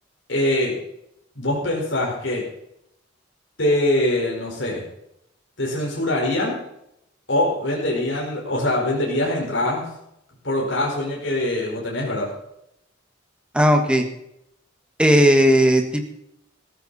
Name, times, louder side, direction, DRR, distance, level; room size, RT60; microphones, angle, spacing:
voice 1, 0.3-0.7 1.3-2.4 3.6-4.8 5.6-6.6 7.3-9.9 10.4-12.3, left 1 dB, 70° left, -2 dB, 4.8 m, -23 dB
voice 2, 13.5-14.0 15.0-16.0, equal, 5° right, 4 dB, 1.6 m, -16 dB
15.0 x 14.0 x 4.2 m, 0.79 s
head